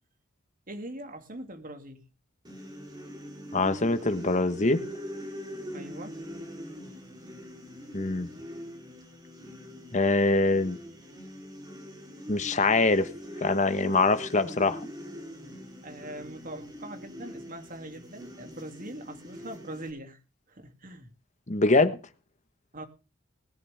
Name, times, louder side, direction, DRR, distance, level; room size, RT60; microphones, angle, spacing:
voice 1, 0.7-2.0 5.7-6.2 15.8-20.2 20.5-21.1 22.7-22.8, right 1 dB, 40° right, 2.7 m, -42 dB
sound 1, 2.4-19.9, equal, 20° right, 3.9 m, -42 dB
voice 2, 3.5-4.8 7.9-8.3 9.9-10.8 12.3-13.1 13.4-14.8 21.5-22.0, left 3 dB, 35° left, 1.3 m, -24 dB
20.0 x 10.5 x 3.5 m
head